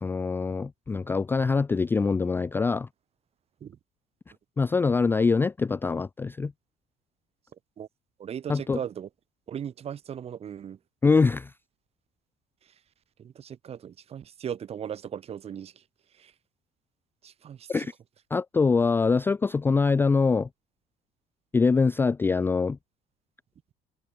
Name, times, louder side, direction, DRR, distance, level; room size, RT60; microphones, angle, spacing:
voice 1, 0.0-2.9 4.6-6.5 8.5-8.8 11.0-11.5 17.7-17.9 18.3-20.5 21.5-22.8, left 4 dB, 10° left, 0.4 m, -24 dB
voice 2, 8.2-9.1 9.5-10.8 13.2-15.7 16.2-16.3 17.2-17.9, right 9 dB, 35° right, 4.2 m, -37 dB
cardioid pair, 160°, 18 cm